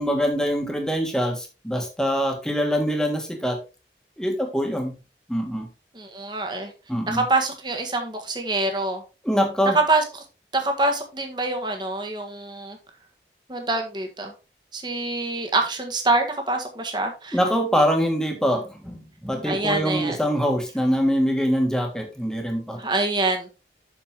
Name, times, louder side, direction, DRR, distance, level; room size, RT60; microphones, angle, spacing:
voice 1, 0.0-3.6 4.2-4.9 5.3-5.7 6.9-7.2 9.2-9.8 17.3-22.8, equal, 5° left, 2 dB, 1.6 m, -24 dB
voice 2, 5.9-6.7 7.1-9.0 9.7-10.2 10.5-12.8 13.5-14.3 14.7-17.4 19.4-20.2 22.8-23.5, right 2 dB, 25° right, 4 dB, 1.5 m, -25 dB
7.5 x 6.7 x 3.5 m, 0.31 s
head